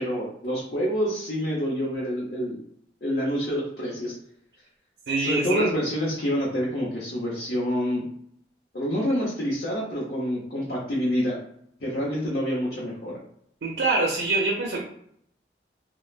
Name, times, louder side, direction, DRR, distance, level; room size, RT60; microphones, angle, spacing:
voice 1, 0.0-2.6 3.0-4.1 5.2-8.0 8.7-11.4 11.8-13.1, equal, 60° left, -6 dB, 0.7 m, -27 dB
voice 2, 5.1-5.7 13.6-14.8, right 3 dB, 75° right, -1 dB, 0.5 m, -25 dB
3.1 x 2.1 x 2.4 m, 0.68 s
head